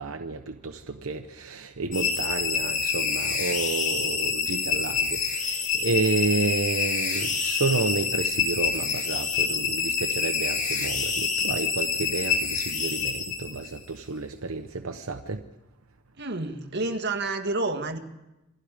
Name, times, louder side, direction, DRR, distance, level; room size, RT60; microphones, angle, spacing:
voice 1, 0.0-15.4, right 3 dB, 80° right, 5 dB, 1.0 m, -30 dB
sound 1, 1.9-13.8, left 5 dB, 35° left, 2.3 m, -27 dB
voice 2, 16.2-18.0, right 2 dB, 55° right, 5 dB, 1.9 m, -29 dB
28.0 x 22.5 x 5.1 m, 0.98 s
head